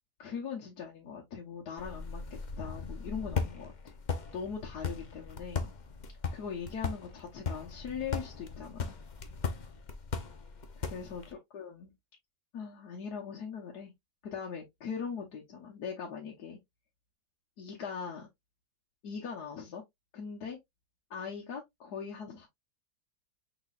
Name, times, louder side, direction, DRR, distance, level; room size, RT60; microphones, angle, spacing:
voice 1, 0.2-3.9 4.3-5.7 6.3-9.0 10.8-11.9 12.5-13.9 14.2-16.6 17.6-18.3 19.0-19.8 20.1-20.6 21.1-22.5, left 6 dB, 85° left, 1.6 m, -40 dB
sound 1, 1.8-11.3, left 5 dB, 45° left, 0.6 m, -38 dB
6.1 x 3.6 x 2.4 m
omnidirectional pair, 1.7 m